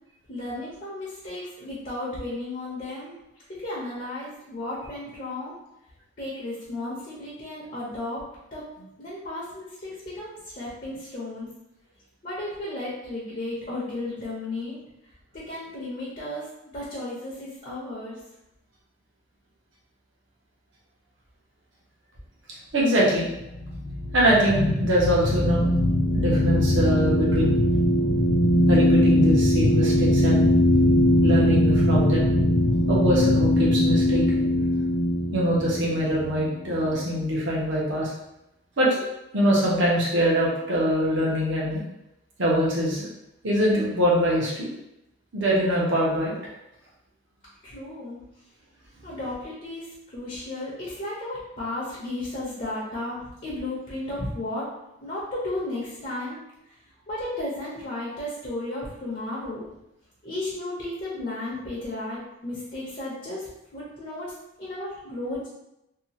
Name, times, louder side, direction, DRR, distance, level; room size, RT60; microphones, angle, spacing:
voice 1, 0.3-3.2 3.5-5.6 6.2-8.2 8.5-11.5 12.2-14.8 15.5-16.5 16.7-18.2 47.6-48.2 49.0-54.7 55.0-56.4 57.1-59.6 60.2-64.3 64.6-65.5, left 1 dB, 40° left, -7 dB, 0.7 m, -34 dB
voice 2, 22.7-23.3 24.1-25.6 26.1-27.5 28.7-30.5 31.2-32.3 32.9-34.2 35.3-38.1 38.8-38.9 39.3-41.8 42.4-43.1 43.4-44.7 45.3-46.3, equal, 60° right, -5 dB, 0.9 m, -23 dB
sound 1, 23.4-37.0, left 1 dB, 80° left, 0.5 m, -21 dB
2.7 x 2.3 x 2.8 m, 0.86 s
head